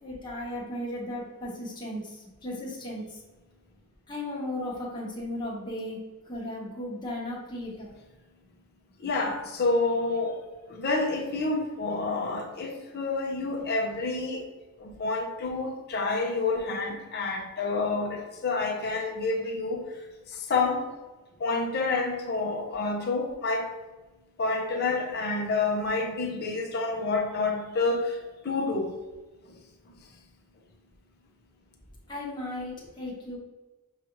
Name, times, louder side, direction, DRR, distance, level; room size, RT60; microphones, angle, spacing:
voice 1, 0.0-3.2 4.1-6.0 6.2-7.9 32.1-33.4, left 1 dB, 20° left, -5 dB, 1.1 m, -36 dB
voice 2, 9.0-10.4 10.7-14.4 14.8-19.9 20.3-20.8 21.4-23.7 24.4-28.2 28.4-29.0, left 3 dB, 45° left, 1 dB, 0.7 m, -28 dB
6.6 x 2.4 x 3.0 m, 1.2 s
head